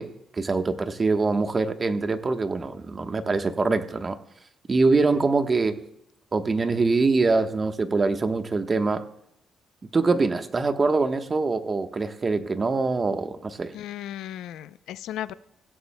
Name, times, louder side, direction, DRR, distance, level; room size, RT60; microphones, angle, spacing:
voice 1, 0.0-4.2 4.7-5.8 6.3-9.0 9.9-13.7, right 3 dB, 30° right, 1.1 m, -24 dB
voice 2, 13.7-15.3, left 12 dB, 85° left, 0.5 m, -35 dB
26.5 x 16.0 x 2.2 m
cardioid pair, 90°, 0 cm